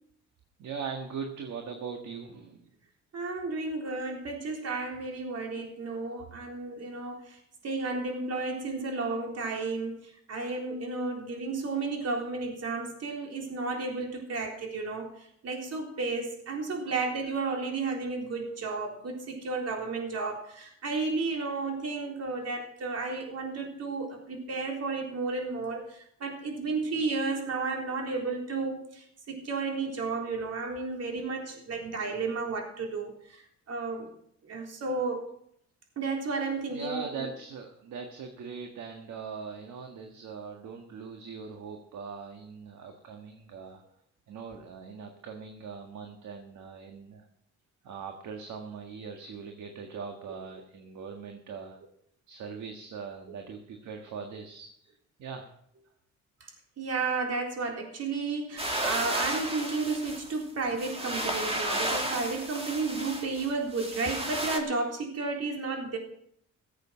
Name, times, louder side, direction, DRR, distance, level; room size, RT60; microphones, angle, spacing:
voice 1, 0.6-2.7 16.8-16.9 31.1-31.3 36.7-43.8 44.3-47.3 47.8-51.8 52.3-54.9 55.2-55.5, right 5 dB, 75° right, 3 dB, 1.7 m, -41 dB
voice 2, 3.1-34.1 34.4-35.2 36.0-37.3 56.8-66.0, right 3 dB, 55° right, 1 dB, 3.8 m, -33 dB
sound 1, 58.6-64.6, right 1 dB, 20° right, 2.5 m, -33 dB
15.5 x 8.2 x 6.3 m, 0.70 s
cardioid pair, 90°, 30 cm